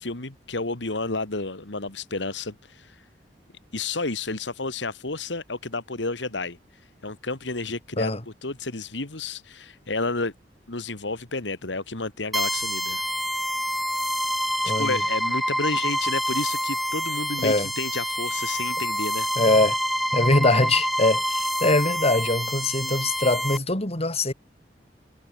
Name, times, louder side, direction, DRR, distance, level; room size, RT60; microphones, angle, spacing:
voice 1, 0.0-3.0 3.7-6.6 7.0-10.3 10.7-13.0 14.6-19.3, left 3 dB, 80° left, 2.3 m, -31 dB
sound 1, 12.3-23.6, equal, ahead, 1.2 m, -27 dB
voice 2, 14.6-15.0 17.4-17.7 19.4-19.8 20.1-24.3, left 2 dB, 35° left, 6.2 m, -22 dB
head